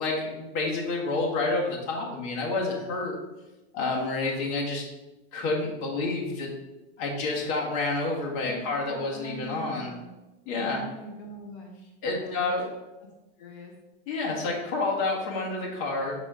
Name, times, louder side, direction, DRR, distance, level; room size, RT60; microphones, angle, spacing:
voice 1, 0.0-3.2 3.7-4.8 5.3-6.5 7.0-9.9 10.4-10.8 12.0-12.7 14.1-16.1, left 3 dB, 45° left, -1 dB, 1.7 m, -29 dB
voice 2, 8.4-10.1 10.5-12.5 13.0-13.1 13.4-13.7, equal, 75° left, 0 dB, 1.4 m, -43 dB
7.6 x 4.2 x 3.8 m, 1.1 s
supercardioid pair, 160°, 33 cm